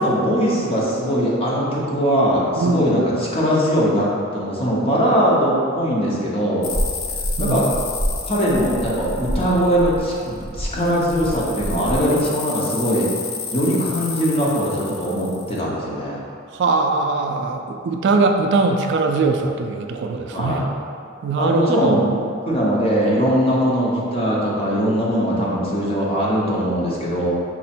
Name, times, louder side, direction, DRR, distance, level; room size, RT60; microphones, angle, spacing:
voice 1, 0.0-6.7 7.4-7.7 8.3-13.1 13.5-16.2 20.3-20.6 21.4-27.3, equal, 30° left, -5 dB, 0.8 m, -20 dB
sound 1, 6.6-10.2 10.8-15.6, left 5 dB, 80° left, 0.5 m, -32 dB
sound 2, 6.7-12.0, equal, ahead, 0.7 m, -28 dB
voice 2, 16.5-20.7 21.2-22.1, right 3 dB, 60° right, 4 dB, 0.3 m, -21 dB
5.9 x 2.1 x 4.2 m, 2.4 s
head